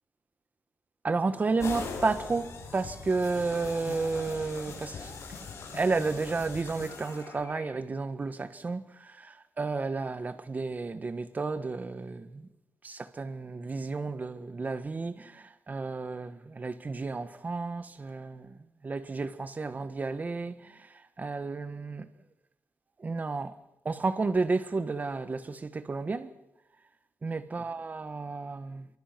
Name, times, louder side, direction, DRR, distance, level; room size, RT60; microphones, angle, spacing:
voice 1, 1.0-5.4 5.7-12.5 12.8-18.5 18.8-22.1 23.0-23.5 23.8-26.3 27.2-28.9, right 3 dB, 30° right, 1.5 m, -32 dB
sound 1, 1.6-7.6, left 4 dB, 65° left, 7.3 m, -41 dB
27.0 x 24.0 x 6.1 m
wide cardioid pair, 115°, 5 cm